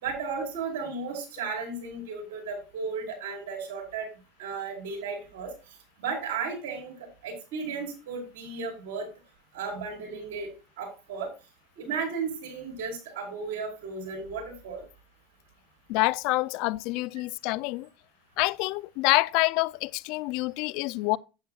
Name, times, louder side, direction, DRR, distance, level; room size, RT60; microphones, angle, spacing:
voice 1, 0.0-4.1 4.4-5.5 6.0-9.1 9.5-10.5 10.8-11.3 11.8-14.8, right 5 dB, 75° right, 4.8 m, -34 dB
voice 2, 15.9-17.9 18.4-21.2, left 22 dB, 70° left, 0.4 m, -27 dB
11.0 x 8.9 x 2.4 m
supercardioid pair, 95°, 0 cm